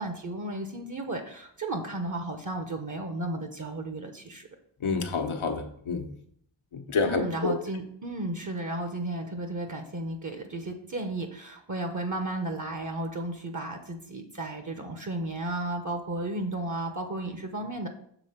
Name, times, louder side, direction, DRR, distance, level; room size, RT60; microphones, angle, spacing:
voice 1, 0.0-4.5 7.0-17.9, right 2 dB, 40° right, 5 dB, 0.8 m, -34 dB
voice 2, 4.8-6.1 6.7-7.5, left 4 dB, 90° left, 4 dB, 1.1 m, -28 dB
7.0 x 3.8 x 5.7 m, 0.67 s
wide cardioid pair, 85°, 47 cm